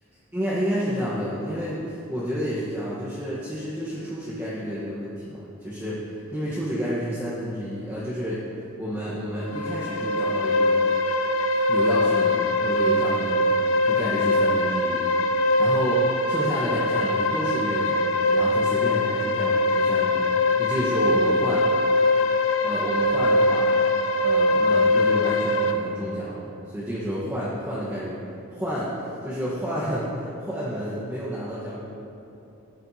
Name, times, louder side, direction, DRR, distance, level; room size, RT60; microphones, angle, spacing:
voice 1, 0.3-8.4 8.8-10.8 11.7-15.0 15.6-21.7 22.6-23.7 24.2-28.2 28.5-31.8, equal, 10° right, -10 dB, 1.2 m, -30 dB
sound 1, 9.4-25.7, left 1 dB, 65° left, 0.6 m, -22 dB
14.0 x 9.0 x 2.8 m, 2.9 s
head